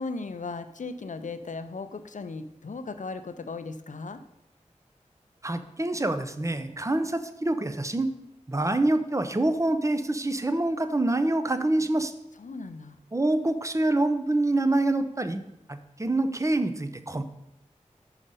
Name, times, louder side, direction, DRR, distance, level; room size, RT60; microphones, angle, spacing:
voice 1, 0.0-4.2 12.4-13.0, left 3 dB, 70° left, 10 dB, 0.5 m, -37 dB
voice 2, 5.4-8.1 8.5-12.1 13.1-15.4 15.7-17.2, right 2 dB, 25° right, 10 dB, 0.6 m, -26 dB
5.4 x 4.9 x 5.4 m, 0.86 s
wide cardioid pair, 45°, 13 cm